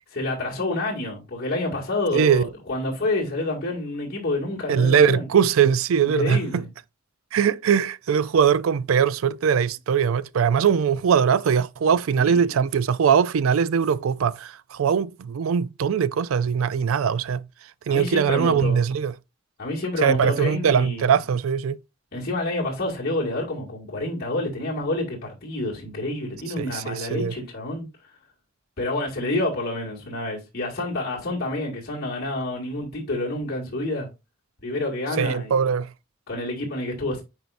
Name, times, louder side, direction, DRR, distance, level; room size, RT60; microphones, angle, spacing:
voice 1, 0.1-5.3 5.9-6.7 12.2-12.5 17.9-18.8 19.6-21.2 22.1-27.9 28.8-34.1 34.6-35.7 36.3-37.2, left 2 dB, 50° left, 2.0 m, -28 dB
voice 2, 2.1-2.5 4.7-6.6 7.3-17.5 17.9-19.1 20.0-21.8 26.6-27.4 35.2-35.9, right 7 dB, 75° right, 0.4 m, -21 dB
9.2 x 4.6 x 2.5 m
head